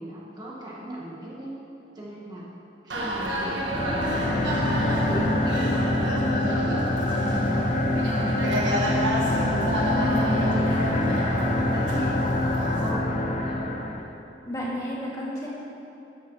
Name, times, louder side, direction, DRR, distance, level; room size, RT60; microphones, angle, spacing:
voice 1, 0.0-1.6 1.9-2.5 2.8-4.6 5.1-7.7 8.5-8.9 10.0-13.8, right 1 dB, 25° right, -5 dB, 1.4 m, -37 dB
sound 1, 2.9-12.9, equal, 85° right, 1.4 m, -31 dB
sound 2, 3.6-14.1, left 1 dB, 40° left, 0.8 m, -25 dB
voice 2, 9.2-10.4 14.5-15.5, equal, 20° left, -6 dB, 2.3 m, -33 dB
12.5 x 12.0 x 3.1 m, 2.9 s
head